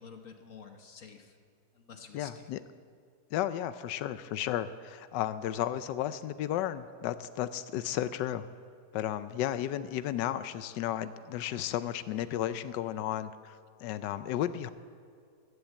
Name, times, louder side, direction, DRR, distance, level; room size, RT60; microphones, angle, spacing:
voice 1, 0.0-1.4 1.7-2.4, left 5 dB, 50° left, 5 dB, 1.5 m, -50 dB
voice 2, 2.1-2.6 3.3-8.5 8.9-14.7, left 11 dB, 85° left, 13 dB, 1.3 m, -33 dB
16.0 x 10.5 x 8.3 m, 2.2 s
omnidirectional pair, 1.8 m